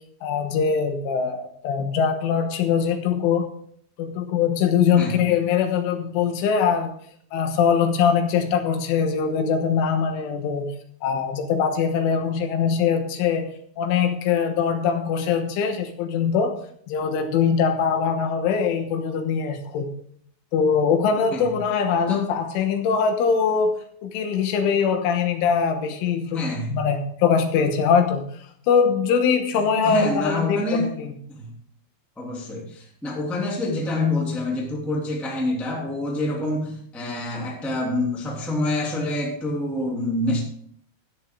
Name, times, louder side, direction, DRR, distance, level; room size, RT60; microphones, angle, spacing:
voice 1, 0.2-3.5 4.0-6.9 7.3-10.7 11.0-13.5 13.8-16.6 16.9-19.9 20.5-23.7 24.0-26.4 26.7-28.3 28.7-31.2, left 6 dB, 80° left, 6 dB, 3.4 m, -22 dB
voice 2, 26.3-26.8 29.8-30.9 31.3-31.5 32.2-40.4, left 1 dB, ahead, -2 dB, 1.2 m, -26 dB
13.5 x 9.7 x 3.7 m, 0.63 s
omnidirectional pair, 5.9 m